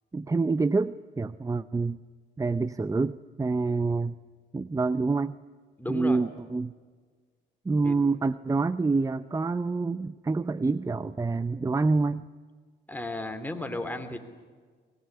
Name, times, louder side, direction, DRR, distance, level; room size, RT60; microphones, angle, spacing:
voice 1, 0.1-2.0 2.4-4.2 4.5-5.3 5.9-6.7 7.6-12.3, right 3 dB, 15° right, 15 dB, 0.6 m, -27 dB
voice 2, 5.8-6.2 7.8-8.0 12.9-14.2, left 2 dB, 10° left, 6 dB, 3.2 m, -34 dB
23.5 x 20.5 x 9.8 m, 1.5 s
cardioid pair, 90°, 20 cm